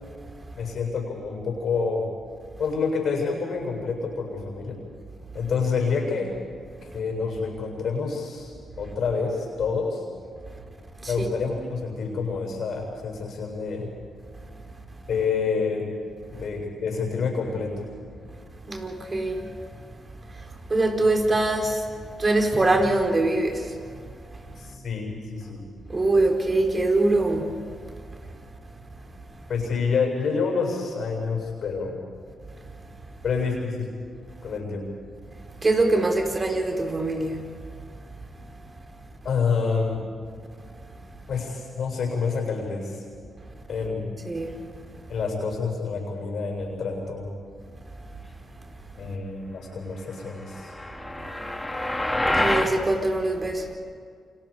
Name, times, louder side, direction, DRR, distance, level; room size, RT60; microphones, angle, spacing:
voice 1, 0.6-2.0 2.6-4.8 5.3-6.4 6.8-10.0 11.0-13.9 15.0-15.9 16.3-17.9 24.6-25.6 29.5-32.0 33.2-33.9 34.4-34.8 39.2-40.0 41.3-43.0 43.7-44.1 45.1-47.3 49.0-50.7, left 5 dB, 70° left, 7.7 m, -28 dB
voice 2, 18.7-19.5 20.7-21.8 22.2-23.6 25.9-27.5 35.6-37.4 44.2-44.6 52.2-53.6, right 2 dB, 35° right, 4.9 m, -23 dB
sound 1, 50.5-52.8, left 1 dB, 15° left, 3.0 m, -26 dB
29.5 x 27.5 x 5.3 m
supercardioid pair, 55°, 0 cm